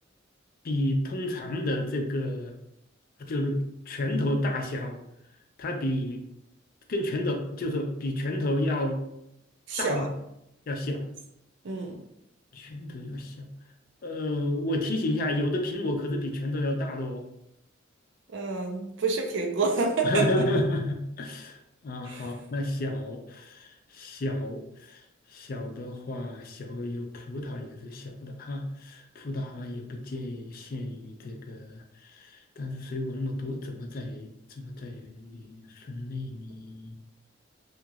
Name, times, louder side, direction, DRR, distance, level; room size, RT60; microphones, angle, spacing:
voice 1, 0.6-2.5 3.2-5.0 5.6-6.2 6.9-9.0 9.8-10.1 10.7-11.0 12.5-13.5 14.0-17.2 20.0-21.6 21.8-23.7 23.9-25.0 25.3-31.8 32.1-32.3 32.6-37.0, left 1 dB, 50° left, 4 dB, 0.4 m, -31 dB
voice 2, 9.7-10.1 11.6-12.0 18.3-20.3 22.1-22.3, right 4 dB, 65° right, 3 dB, 0.5 m, -28 dB
2.9 x 2.8 x 2.4 m, 0.80 s
head